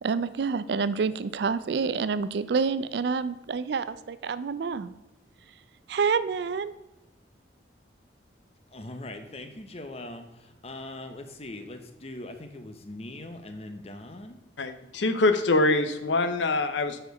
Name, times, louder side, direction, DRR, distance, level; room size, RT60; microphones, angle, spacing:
voice 1, 0.0-4.9 5.9-6.7, right 5 dB, 65° right, 14 dB, 0.4 m, -28 dB
voice 2, 8.7-10.2 10.6-14.4, left 2 dB, 35° left, 7 dB, 0.7 m, -41 dB
voice 3, 14.6-17.0, left 2 dB, 85° left, 9 dB, 0.7 m, -24 dB
7.0 x 4.4 x 5.2 m, 0.96 s
head